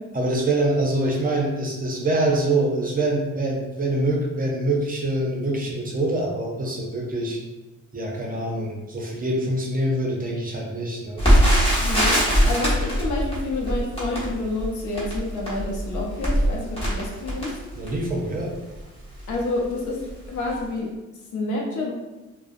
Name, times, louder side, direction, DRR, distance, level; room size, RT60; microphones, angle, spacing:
voice 1, 0.1-7.4 7.9-11.2 12.4-12.5 17.8-18.5, right 2 dB, 30° right, -1 dB, 0.5 m, -25 dB
Crackle, 11.2-18.1 18.8-18.9 19.2-19.4 20.0-20.2 20.5-20.6, equal, 20° left, 1.1 m, -22 dB
voice 2, 11.8-17.6 19.3-20.9 21.3-21.9, left 2 dB, 75° left, -1 dB, 0.7 m, -28 dB
2.3 x 2.1 x 2.5 m, 1.1 s
cardioid pair, 90°, 30 cm